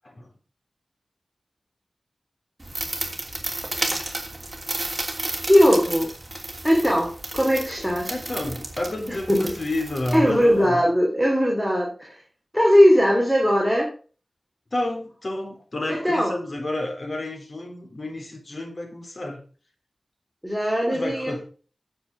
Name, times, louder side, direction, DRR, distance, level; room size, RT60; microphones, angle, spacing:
sound 1, 2.6-10.7, right 2 dB, 25° right, 2.8 m, -32 dB
voice 1, 5.5-6.1 6.6-8.2 9.1-9.6 10.1-12.1 12.5-13.9 15.9-16.3 20.4-21.4, equal, 5° left, -1 dB, 2.9 m, -19 dB
voice 2, 8.1-10.8 14.7-19.4 20.9-21.4, left 1 dB, 50° left, 2 dB, 3.8 m, -30 dB
9.6 x 7.8 x 5.0 m, 0.38 s
wide cardioid pair, 90°, 0 cm